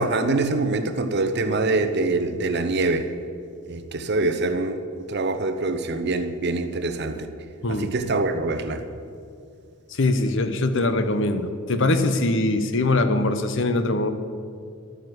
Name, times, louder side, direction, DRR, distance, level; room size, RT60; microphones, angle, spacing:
voice 1, 0.0-3.1 3.7-4.8 5.1-7.3 7.7-8.8, right 2 dB, 50° right, 0.9 m, -24 dB
voice 2, 10.0-14.1, left 2 dB, 60° left, 0.9 m, -22 dB
12.5 x 9.3 x 7.8 m
head